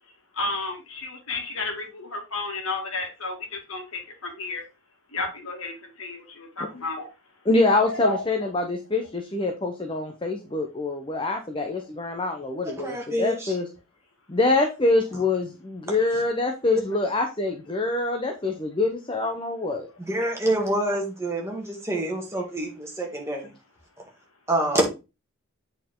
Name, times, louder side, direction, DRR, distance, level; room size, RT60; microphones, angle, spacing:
voice 1, 0.4-4.6 5.1-7.0 7.9-8.2, left 3 dB, 75° left, 2.0 m, -31 dB
voice 2, 7.4-13.7 14.3-19.9, left 2 dB, 25° left, 0.7 m, -25 dB
voice 3, 12.6-13.6 16.1-16.2 20.1-23.5 24.5-24.8, right 1 dB, 10° right, 1.8 m, -27 dB
8.0 x 4.5 x 3.7 m
head